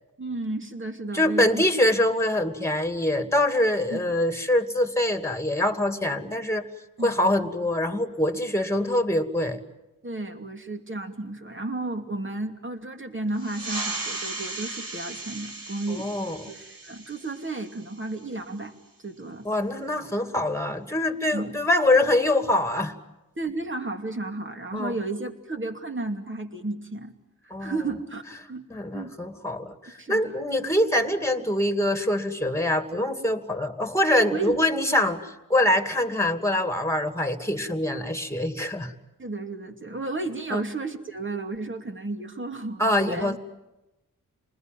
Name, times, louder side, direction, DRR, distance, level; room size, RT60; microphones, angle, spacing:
voice 1, 0.2-1.7 3.9-4.1 7.0-7.1 10.0-16.1 16.5-18.8 19.0-19.5 21.3-21.5 23.4-27.1 27.4-28.2 28.5-28.7 28.9-29.1 30.0-30.4 34.3-34.6 39.2-43.4, right 2 dB, 35° right, 4 dB, 2.7 m, -33 dB
voice 2, 1.1-6.6 7.0-9.6 15.9-16.4 19.4-22.9 24.7-24.9 27.5-27.7 28.7-38.9 40.5-40.6 42.8-43.4, left 1 dB, 10° left, 7 dB, 2.5 m, -24 dB
sound 1, 13.3-18.5, right 3 dB, 85° right, 4.6 m, -36 dB
28.5 x 20.5 x 9.2 m, 1.0 s
cardioid pair, 60°, 34 cm